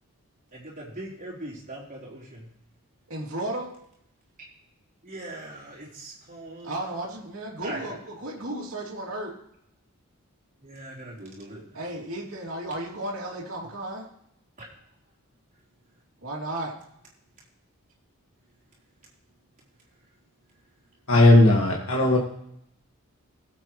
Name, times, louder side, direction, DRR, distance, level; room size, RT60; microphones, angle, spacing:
voice 1, 0.5-2.5 5.0-6.7 7.6-8.0 10.6-11.6 14.6-14.7, right 1 dB, 35° right, -4 dB, 3.9 m, -40 dB
voice 2, 3.1-3.7 6.6-9.3 11.7-14.1 16.2-16.7, right 1 dB, 65° right, -2 dB, 2.9 m, -34 dB
voice 3, 21.1-22.2, left 2 dB, 65° left, -2 dB, 1.9 m, -17 dB
20.0 x 8.3 x 3.2 m, 0.74 s
head